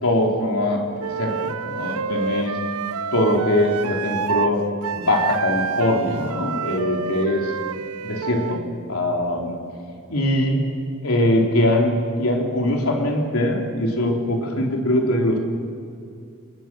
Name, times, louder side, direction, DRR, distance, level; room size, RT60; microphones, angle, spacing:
voice 1, 0.0-2.6 3.1-4.7 4.9-7.5 8.0-8.6 8.9-9.6 10.1-10.6 11.0-15.4, left 1 dB, 75° left, 1 dB, 3.8 m, -22 dB
Wind instrument woodwind instrument, 1.0-4.5 4.8-8.6, right 6 dB, 80° right, 0.8 m, -28 dB
28.5 x 20.0 x 7.7 m, 2.4 s
head